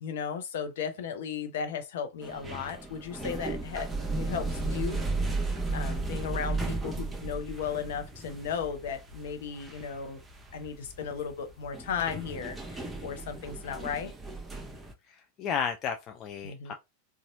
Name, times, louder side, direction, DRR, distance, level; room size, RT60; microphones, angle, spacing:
voice 1, 0.0-5.0 5.7-10.2 10.5-14.1 16.4-16.7, left 7 dB, 55° left, 0.8 m, -35 dB
sound 1, 2.2-14.9, right 3 dB, 10° right, 0.7 m, -35 dB
voice 2, 15.1-16.7, left 7 dB, 35° left, 0.4 m, -33 dB
4.0 x 2.4 x 2.7 m
figure-of-eight pair, 90°, 0 cm